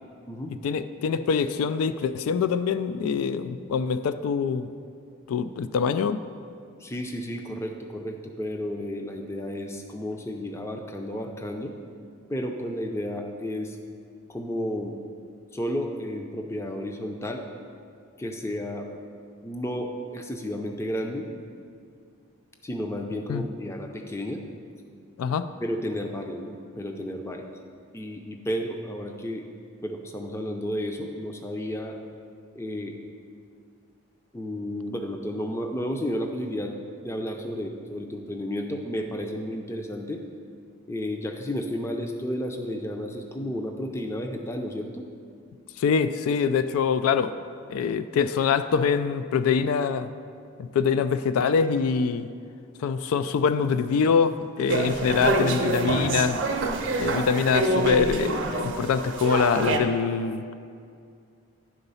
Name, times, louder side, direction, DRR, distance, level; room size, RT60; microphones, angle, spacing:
voice 1, 0.6-4.7 5.3-6.2 23.3-23.4 25.2-25.5 45.8-47.4 47.7-50.1 50.6-52.3 52.8-56.4 57.0-60.5, left 6 dB, 80° left, 13 dB, 0.3 m, -24 dB
voice 2, 6.8-11.7 12.3-13.8 14.3-15.0 15.5-17.4 18.2-18.9 19.4-21.3 22.6-24.4 25.6-27.5 27.9-29.5 29.8-32.0 32.5-33.0 34.3-40.2 40.9-45.1, equal, 10° left, 3 dB, 0.4 m, -32 dB
sound 1, 54.7-59.8, right 2 dB, 55° right, 0.6 m, -26 dB
9.9 x 3.9 x 5.5 m, 2.3 s
head